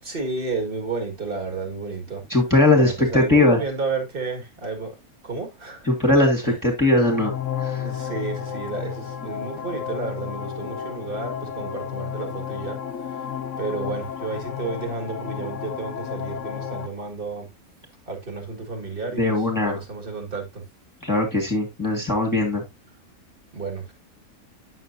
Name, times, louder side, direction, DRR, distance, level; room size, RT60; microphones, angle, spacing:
voice 1, 0.0-2.2 2.7-4.9 5.2-5.9 6.4-6.6 7.8-13.3 13.6-17.5 18.1-20.6 23.5-23.9, right 4 dB, 40° right, 2.1 m, -31 dB
voice 2, 2.3-3.6 5.9-7.3 7.6-7.9 19.2-19.8 21.0-22.6, left 2 dB, 15° left, 1.8 m, -20 dB
sound 1, 6.9-16.9, left 8 dB, 60° left, 1.2 m, -32 dB
9.0 x 6.6 x 2.7 m
omnidirectional pair, 1.5 m